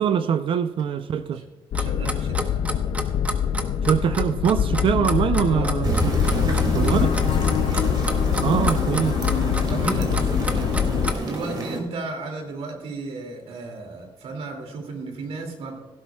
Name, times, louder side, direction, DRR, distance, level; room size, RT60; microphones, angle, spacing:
voice 1, 0.0-1.4 3.8-5.9 6.4-7.2 8.4-9.5, right 8 dB, 65° right, 0.5 m, -23 dB
sound 1, 1.7-11.1, left 9 dB, 65° left, 0.5 m, -24 dB
Clock, 1.7-11.4, right 1 dB, 15° right, 1.1 m, -30 dB
voice 2, 1.8-2.6 5.5-7.0 7.6-8.0 8.4-8.8 9.6-10.9 11.2-15.8, right 2 dB, 90° right, 2.5 m, -34 dB
sound 2, 5.8-11.8, right 2 dB, 45° right, 2.4 m, -28 dB
16.5 x 12.0 x 2.3 m
cardioid pair, 125°, 10 cm